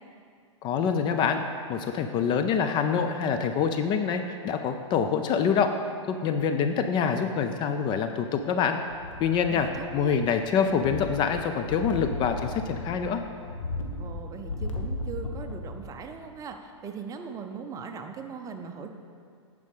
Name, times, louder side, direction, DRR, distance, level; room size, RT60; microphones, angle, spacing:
voice 1, 0.6-1.4 1.7-8.8 9.2-13.2, left 6 dB, 30° left, 7 dB, 0.4 m, -26 dB
sound 1, 8.9-10.3 10.6-15.9 16.3-16.4, left 2 dB, 85° left, 1.2 m, -36 dB
voice 2, 9.5-10.3 14.0-18.9, right 5 dB, 20° right, 5 dB, 0.7 m, -40 dB
10.0 x 4.9 x 5.4 m, 2.2 s
hypercardioid pair, 110°, 16 cm